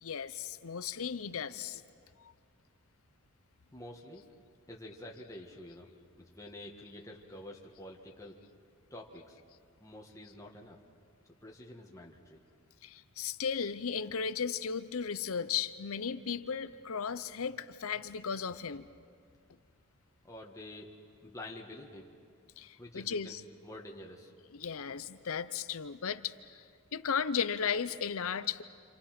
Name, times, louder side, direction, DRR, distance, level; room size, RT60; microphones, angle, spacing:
voice 1, 0.0-1.8 12.8-18.9 22.6-23.4 24.5-26.6 26.9-28.6, left 6 dB, 65° left, 13 dB, 0.7 m, -35 dB
voice 2, 3.7-4.3 4.7-8.4 8.9-9.4 9.8-10.8 11.4-12.4 20.2-20.9 21.2-22.1 22.6-23.3 23.6-24.3, left 1 dB, 15° left, -1 dB, 1.7 m, -48 dB
29.0 x 26.5 x 6.0 m, 2.2 s
head